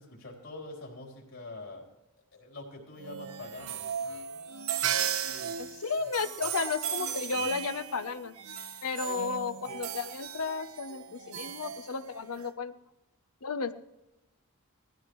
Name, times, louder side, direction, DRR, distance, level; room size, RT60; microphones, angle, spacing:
voice 1, 0.0-1.9 2.3-4.0, left 2 dB, 65° left, 0 dB, 3.7 m, -44 dB
sound 1, 3.0-12.5, right 8 dB, 75° right, 0.9 m, -36 dB
voice 2, 5.2-8.3 8.8-12.7 13.4-13.7, left 4 dB, 80° left, 10 dB, 0.9 m, -33 dB
19.5 x 15.0 x 3.1 m, 0.93 s
head